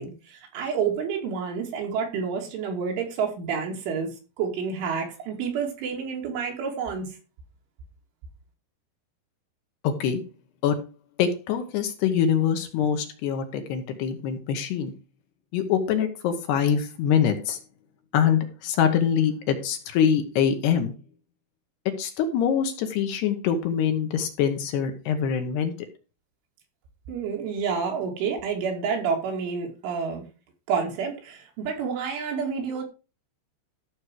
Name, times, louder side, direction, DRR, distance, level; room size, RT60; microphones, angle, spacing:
voice 1, 0.0-4.1 4.4-7.1 27.1-30.2 30.7-32.8, right 6 dB, 85° right, 5.1 m, -29 dB
voice 2, 9.8-10.2 10.6-10.8 11.2-14.9 15.5-17.6 18.1-20.9 22.0-25.7, left 8 dB, 70° left, 3.1 m, -24 dB
14.0 x 6.4 x 4.7 m
omnidirectional pair, 5.4 m